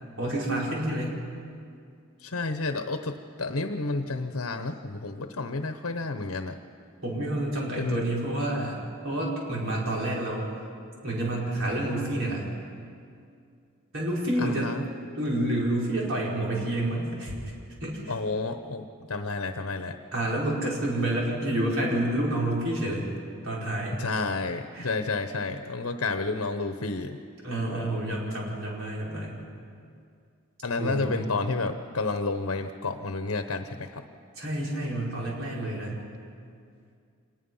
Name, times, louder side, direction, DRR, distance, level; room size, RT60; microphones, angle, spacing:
voice 1, 0.2-1.2 7.0-8.8 9.0-10.5 11.0-12.5 13.9-14.7 15.2-17.3 17.8-18.1 20.1-23.1 23.4-24.0 24.7-24.9 27.4-29.4 30.8-31.2 34.4-36.0, right 1 dB, 65° right, -4 dB, 5.4 m, -29 dB
voice 2, 2.2-6.6 7.8-8.0 14.4-14.8 18.1-20.0 24.0-27.2 30.6-34.0, left 3 dB, 75° left, 8 dB, 1.0 m, -30 dB
26.0 x 20.5 x 5.6 m, 2.3 s
head